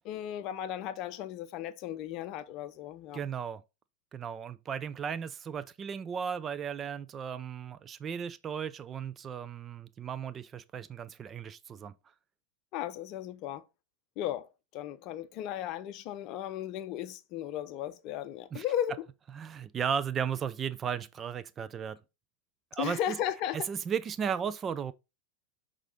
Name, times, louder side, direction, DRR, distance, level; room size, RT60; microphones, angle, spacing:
voice 1, 0.0-3.2 12.7-13.6 14.2-19.0 22.8-23.7, left 11 dB, 40° left, 0.6 m, -35 dB
voice 2, 3.1-3.6 4.1-11.9 18.5-18.6 19.4-22.0 22.7-23.2 23.7-24.9, right 7 dB, 25° right, 0.3 m, -35 dB
6.4 x 3.7 x 4.0 m
figure-of-eight pair, 90°, 0 cm